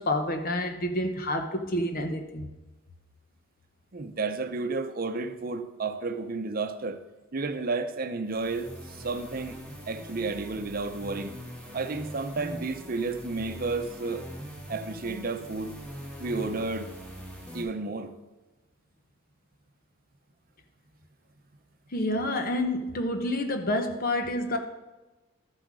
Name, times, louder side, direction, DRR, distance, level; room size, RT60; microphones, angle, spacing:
voice 1, 0.0-2.5 21.9-24.6, left 1 dB, 45° left, 0.9 m, -28 dB
voice 2, 3.9-7.0 7.3-9.6 9.9-11.3 11.7-14.2 14.7-15.8 16.2-16.9 17.5-18.1, right 3 dB, 45° right, 0.7 m, -32 dB
sound 1, 8.2-17.6, equal, 5° left, 1.9 m, -42 dB
12.5 x 7.7 x 4.8 m
head